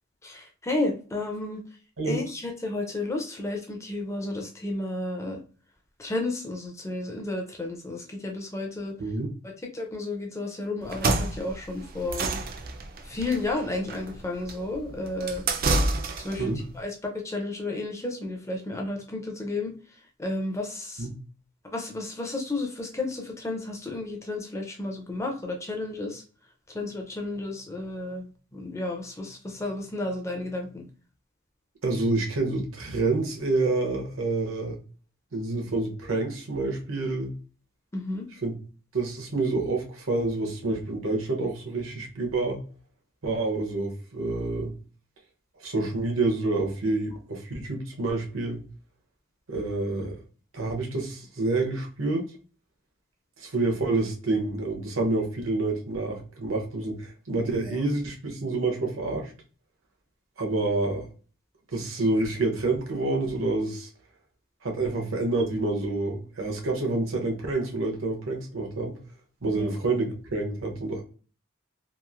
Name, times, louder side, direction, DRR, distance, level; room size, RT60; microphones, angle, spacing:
voice 1, 0.2-1.6 2.0-5.4 6.0-8.9 9.4-12.3 13.0-15.4 16.2-19.7 20.2-21.1 21.7-26.2 26.7-30.9 37.9-38.3 57.7-57.8 69.6-69.7, left 2 dB, 15° left, 2 dB, 0.4 m, -32 dB
sound 1, 10.8-16.5, right 2 dB, 45° right, 0.4 m, -28 dB
voice 2, 31.8-34.8 35.3-37.3 38.4-38.5 38.9-42.6 43.2-44.7 45.6-48.6 49.5-50.1 50.5-52.2 53.4-59.3 60.4-61.1 61.7-63.9 64.6-69.0 69.4-71.0, right 2 dB, 75° right, 1 dB, 0.8 m, -28 dB
3.0 x 2.4 x 2.4 m, 0.39 s
head